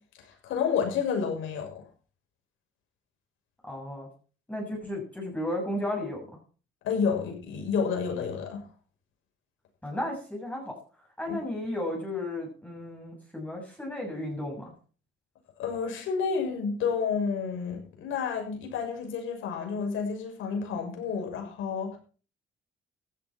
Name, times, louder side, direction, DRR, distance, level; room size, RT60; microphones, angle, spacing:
voice 1, 0.2-1.7 6.8-8.6 15.6-22.0, left 6 dB, 85° left, 3 dB, 6.6 m, -30 dB
voice 2, 3.6-4.1 4.5-6.3 9.8-10.7 11.2-14.7, left 1 dB, 5° left, -1 dB, 6.7 m, -34 dB
15.5 x 12.5 x 4.5 m, 0.40 s
cardioid pair, 90°, 20 cm